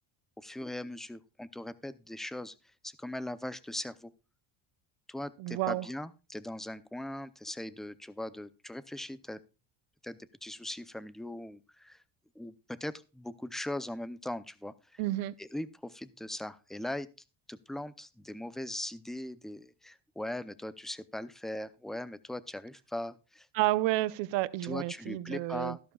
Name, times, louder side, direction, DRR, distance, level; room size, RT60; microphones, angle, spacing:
voice 1, 0.4-2.6 2.8-4.1 5.1-9.4 10.0-12.0 12.4-15.0 15.4-17.1 17.5-23.5 24.6-25.8, left 1 dB, ahead, 0.5 m, -40 dB
voice 2, 5.4-5.8 15.0-15.3 23.5-25.8, right 17 dB, 80° right, 0.8 m, -30 dB
14.0 x 12.0 x 2.3 m
cardioid pair, 140°, 44 cm